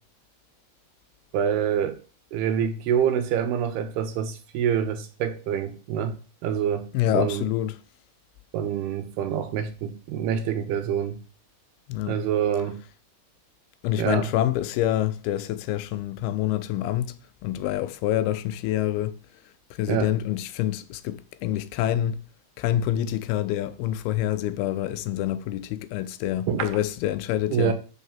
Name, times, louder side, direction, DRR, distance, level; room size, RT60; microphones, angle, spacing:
voice 1, 1.3-2.0 2.3-6.2 6.4-7.4 8.5-11.2 12.1-12.8 14.0-14.3 19.9-20.1 26.5-26.7 27.5-27.7, right 8 dB, 80° right, 3.1 m, -26 dB
voice 2, 6.9-7.8 11.9-12.2 13.8-17.2 17.4-19.2 19.7-22.2 22.6-27.7, left 12 dB, 80° left, 2.5 m, -26 dB
6.5 x 6.5 x 7.3 m
omnidirectional pair, 4.6 m